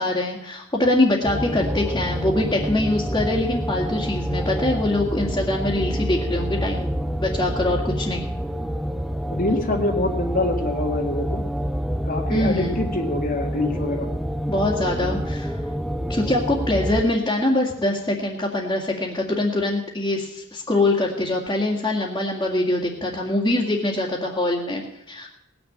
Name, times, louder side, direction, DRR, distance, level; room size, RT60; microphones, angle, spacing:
voice 1, 0.0-6.9 7.2-8.2 12.3-12.9 14.5-15.6 16.1-25.3, left 1 dB, 20° left, -5 dB, 2.1 m, -23 dB
sound 1, 1.2-17.0, equal, ahead, 0.5 m, -27 dB
voice 2, 9.3-11.4 12.0-14.1, left 2 dB, 45° left, 2 dB, 1.7 m, -25 dB
19.0 x 7.0 x 8.7 m, 0.83 s
head